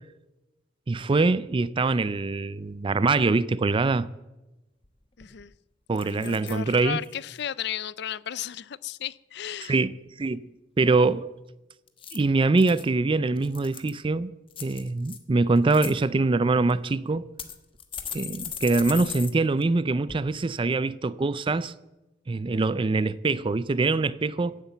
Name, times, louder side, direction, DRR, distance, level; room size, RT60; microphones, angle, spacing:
voice 1, 0.9-4.1 5.9-7.0 9.7-10.5 10.8-11.3 12.1-14.3 14.6-17.3 18.1-21.7 22.3-24.6, right 3 dB, 30° right, 0.4 m, -24 dB
sound 1, 4.8-4.9 5.2-5.5 6.0-6.6 7.0-7.4 11.9-12.8 13.4-14.0 14.5-15.2 15.6-15.9 16.7-16.8 17.4-19.3 19.6-19.7 20.1-20.2, left 8 dB, 30° left, 1.2 m, -38 dB
voice 2, 5.2-5.5 6.0-9.8, left 9 dB, 65° left, 0.5 m, -34 dB
15.5 x 8.3 x 8.1 m
head